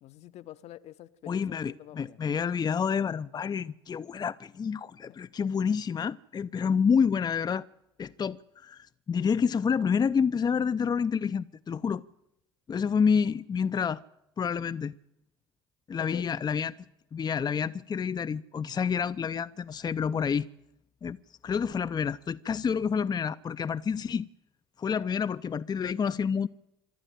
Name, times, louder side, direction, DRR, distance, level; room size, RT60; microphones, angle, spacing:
voice 1, 0.0-2.2 5.1-5.2 16.0-16.2, left 13 dB, 60° left, 1.1 m, -46 dB
voice 2, 1.3-7.6 8.0-12.0 12.7-14.0 14.4-14.9 15.9-16.7 17.1-20.5 21.0-21.2 21.4-24.3 24.8-26.5, left 6 dB, 35° left, 0.6 m, -28 dB
25.5 x 12.0 x 9.1 m
hypercardioid pair, 55°, 13 cm